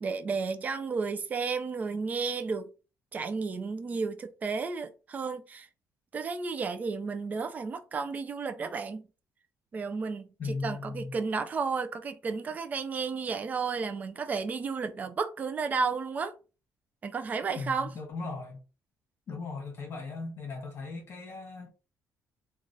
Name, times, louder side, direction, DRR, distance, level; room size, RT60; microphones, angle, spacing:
voice 1, 0.0-2.7 3.1-5.7 6.1-9.0 9.7-10.2 10.6-16.3 17.0-17.9, right 4 dB, 25° right, 0.3 m, -32 dB
voice 2, 10.4-11.2 17.5-18.6 19.3-21.7, left 3 dB, 40° left, 1.1 m, -38 dB
3.1 x 2.3 x 2.6 m
cardioid pair, 155°, 6 cm